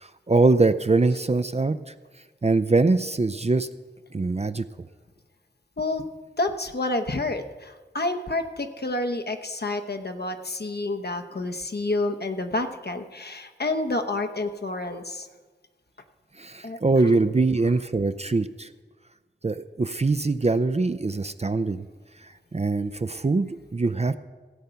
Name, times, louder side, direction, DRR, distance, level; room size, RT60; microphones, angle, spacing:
voice 1, 0.0-1.9 2.4-3.7 4.1-4.7 16.4-18.7 19.4-21.8 22.5-24.2, right 3 dB, 35° right, 11 dB, 0.4 m, -23 dB
voice 2, 6.4-15.3 16.6-17.1, left 2 dB, 60° left, 5 dB, 0.9 m, -29 dB
16.0 x 8.0 x 5.7 m, 1.3 s
wide cardioid pair, 60°, 19 cm